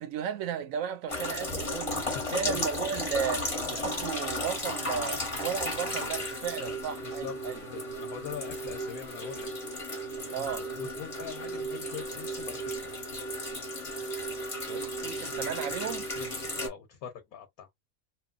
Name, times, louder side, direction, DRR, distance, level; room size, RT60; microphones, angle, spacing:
voice 1, 0.0-2.0 2.3-7.6 10.3-10.7 14.6-16.1, right 8 dB, 75° right, 1.0 m, -34 dB
sound 1, 1.1-16.7, left 1 dB, 25° left, 1.0 m, -34 dB
voice 2, 2.1-2.7 6.6-6.8 7.0-7.4 7.7-9.5 10.4-12.8 16.2-17.7, left 8 dB, 90° left, 1.2 m, -42 dB
3.0 x 2.3 x 2.3 m
omnidirectional pair, 1.4 m